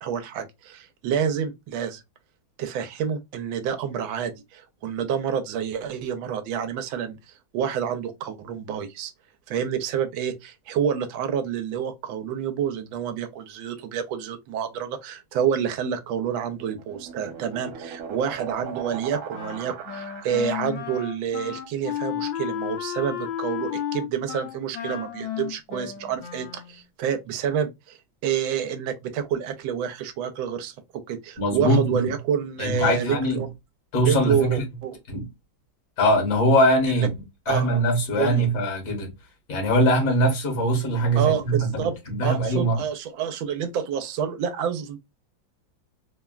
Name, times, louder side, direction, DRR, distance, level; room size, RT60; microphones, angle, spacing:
voice 1, 0.0-2.0 2.6-7.2 7.5-9.1 9.5-33.5 34.0-35.0 36.9-37.1 37.5-37.7 38.1-38.4 41.2-42.0 42.2-45.0, right 8 dB, 90° right, 1.4 m, -28 dB
sound 1, 16.2-21.0, right 6 dB, 65° right, 0.8 m, -39 dB
Wind instrument woodwind instrument, 19.3-26.8, left 10 dB, 75° left, 1.2 m, -33 dB
voice 2, 31.4-32.1 32.6-33.4 33.9-34.6 35.1-35.3 36.0-37.1 37.5-39.1 39.5-42.8, right 1 dB, 50° left, 1.5 m, -22 dB
3.5 x 2.2 x 2.3 m
omnidirectional pair, 2.1 m